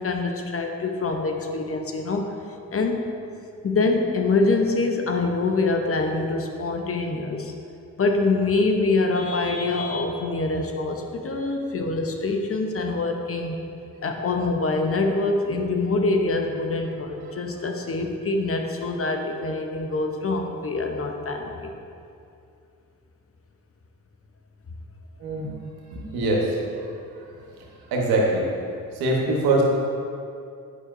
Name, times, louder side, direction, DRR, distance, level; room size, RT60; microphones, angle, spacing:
voice 1, 0.0-2.2 2.7-3.1 3.6-7.5 8.0-13.6 14.0-21.7, left 3 dB, 40° left, 3 dB, 0.8 m, -25 dB
voice 2, 25.2-25.5 25.9-26.4 27.9-28.5 28.9-29.7, right 2 dB, 80° right, -2 dB, 1.3 m, -22 dB
8.3 x 5.6 x 2.6 m, 2.5 s
supercardioid pair, 55°, 36 cm